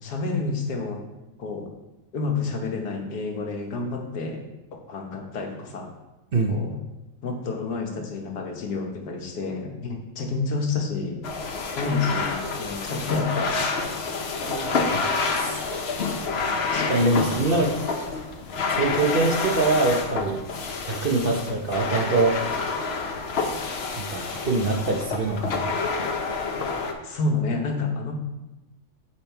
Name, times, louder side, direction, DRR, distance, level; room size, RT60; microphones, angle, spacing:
voice 1, 0.0-1.0 1.4-1.7 2.1-4.4 4.7-5.9 6.5-6.8 7.2-11.3 11.8-13.7 27.0-28.1, left 3 dB, 85° left, 2 dB, 1.7 m, -29 dB
sound 1, 11.2-26.9, left 4 dB, 50° left, 0.8 m, -28 dB
voice 2, 14.4-17.7 18.7-20.4 20.8-22.4 24.0-25.7, right 2 dB, 45° right, 0 dB, 0.8 m, -25 dB
7.1 x 5.7 x 4.5 m, 1.0 s
omnidirectional pair, 1.7 m